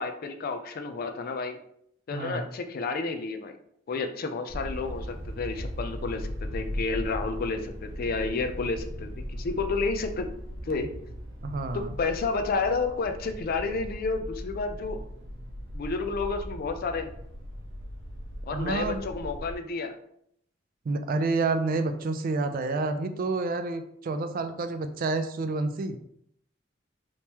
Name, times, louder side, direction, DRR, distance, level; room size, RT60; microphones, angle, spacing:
voice 1, 0.0-1.6 2.1-3.6 3.9-10.3 10.6-10.9 11.7-15.0 15.7-17.1 18.5-20.0, left 4 dB, 50° left, 7 dB, 0.4 m, -31 dB
voice 2, 2.1-2.5 11.4-11.9 18.5-19.0 20.9-26.0, right 3 dB, 50° right, 8 dB, 0.4 m, -29 dB
sound 1, 4.5-19.5, equal, 80° right, 0.7 m, -38 dB
3.6 x 2.9 x 2.8 m, 0.71 s
head